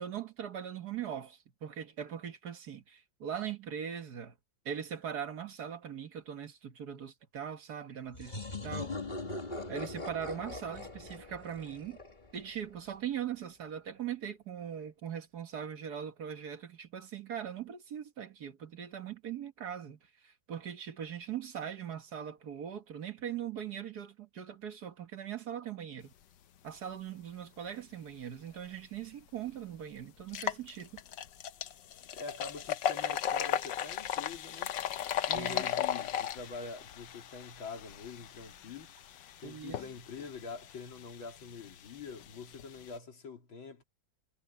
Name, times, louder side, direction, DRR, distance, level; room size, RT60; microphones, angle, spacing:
voice 1, 0.0-4.3 4.7-8.9 9.7-12.0 12.3-26.1 26.6-31.0 35.3-35.8 39.4-39.8, right 9 dB, 55° right, 1.8 m, -40 dB
sound 1, 8.1-12.7, left 2 dB, 25° left, 1.9 m, -41 dB
sound 2, 28.9-29.0 29.5-29.6 30.2-43.0, left 10 dB, 70° left, 1.5 m, -37 dB
voice 2, 32.1-34.7 35.3-38.9 39.4-43.8, left 4 dB, 85° left, 3.9 m, -45 dB
omnidirectional pair, 2.1 m